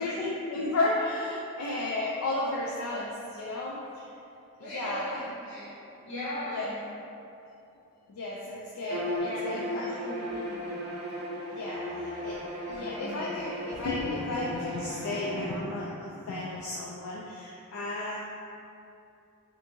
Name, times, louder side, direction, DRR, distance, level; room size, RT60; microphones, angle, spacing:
voice 1, 0.0-4.0 4.7-5.2 6.5-6.7 8.1-9.8 11.5-18.2, left 2 dB, 80° left, -4 dB, 0.3 m, -33 dB
voice 2, 4.6-5.7 6.0-6.8 9.2-10.4 12.7-13.3, equal, 55° left, -12 dB, 1.4 m, -38 dB
Bowed string instrument, 8.8-15.6, left 1 dB, 80° right, 0.5 m, -36 dB
3.4 x 2.6 x 2.8 m, 2.7 s
head